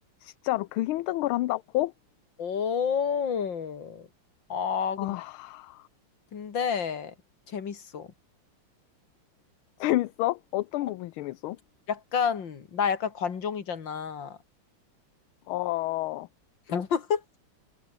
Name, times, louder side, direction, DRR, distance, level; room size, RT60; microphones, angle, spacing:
voice 1, 0.2-1.9 5.0-5.9 9.8-11.6 15.5-16.3, left 17 dB, 75° left, 1.5 m, -29 dB
voice 2, 2.4-4.1 4.5-5.1 6.3-7.1 7.5-8.1 11.9-14.4 16.7-17.2, left 7 dB, 60° left, 2.7 m, -29 dB
omnidirectional pair, 2.4 m